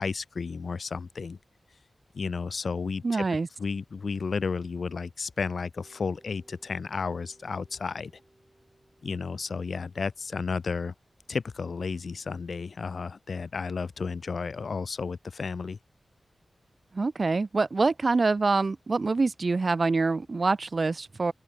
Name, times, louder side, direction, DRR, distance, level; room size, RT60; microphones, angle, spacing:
voice 1, 0.0-1.4 2.1-3.3 3.6-8.1 9.0-10.9 11.3-15.8, left 5 dB, 65° left, 0.5 m, -32 dB
voice 2, 3.0-3.5 16.9-21.3, right 3 dB, 45° right, 0.4 m, -25 dB
sound 1, 5.8-13.5, right 1 dB, 15° right, 4.3 m, -62 dB
open air
wide cardioid pair, 105°, 0 cm